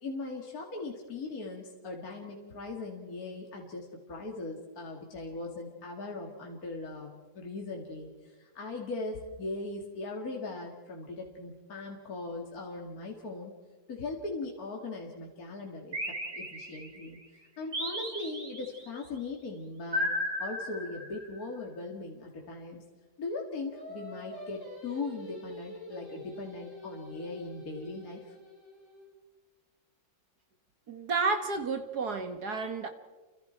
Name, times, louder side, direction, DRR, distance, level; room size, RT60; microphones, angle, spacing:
voice 1, 0.0-7.1 7.3-13.5 13.9-16.0 16.3-17.2 17.6-20.1 20.4-22.8 23.2-28.3, left 3 dB, 45° left, -1 dB, 2.7 m, -39 dB
sound 1, 15.9-17.1 17.7-18.9 19.9-21.4, left 1 dB, 30° right, 3.7 m, -34 dB
Singing, 23.7-29.1, left 1 dB, 10° right, 8.0 m, -46 dB
voice 2, 30.9-32.9, right 4 dB, 55° right, 7 dB, 1.8 m, -31 dB
29.5 x 25.0 x 4.5 m, 1.3 s
omnidirectional pair, 2.2 m